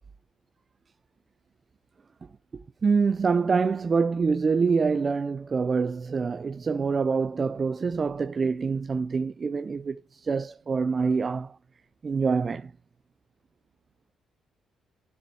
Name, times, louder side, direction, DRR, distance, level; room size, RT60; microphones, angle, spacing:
voice 1, 2.5-11.6 12.0-12.7, right 5 dB, 40° right, 0.5 m, -26 dB
9.7 x 7.0 x 4.8 m
cardioid pair, 90°, 0 cm